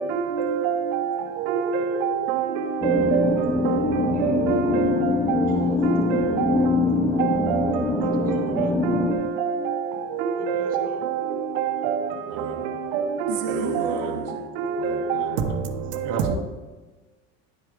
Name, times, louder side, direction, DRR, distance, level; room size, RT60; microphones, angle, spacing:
voice 1, 0.4-0.8 1.5-1.8 2.8-3.2 4.5-4.9 5.9-6.5 8.9-9.0 10.5-10.6, right 6 dB, 80° right, 1.1 m, -24 dB
sound 1, 2.8-9.1, left 3 dB, 10° left, 0.5 m, -23 dB
voice 2, 5.5-5.8 8.0-8.8 10.4-11.1, right 4 dB, 25° right, 1.4 m, -43 dB
voice 3, 12.3-12.7 13.4-14.3 14.8-15.4 16.0-16.4, right 4 dB, 40° right, 1.2 m, -33 dB
11.0 x 4.5 x 5.0 m
cardioid pair, 160°, 37 cm